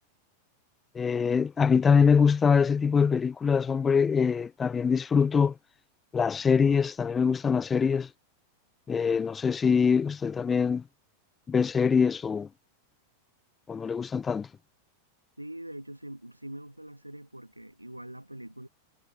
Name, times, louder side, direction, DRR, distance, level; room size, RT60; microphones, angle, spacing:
voice 1, 0.9-5.5 6.1-8.1 8.9-10.8 11.5-12.5 13.7-14.5, left 6 dB, 20° left, 1.0 m, -24 dB
voice 2, 15.4-18.7, right 1 dB, 85° right, 3.1 m, -43 dB
figure-of-eight pair, 90°, 0 cm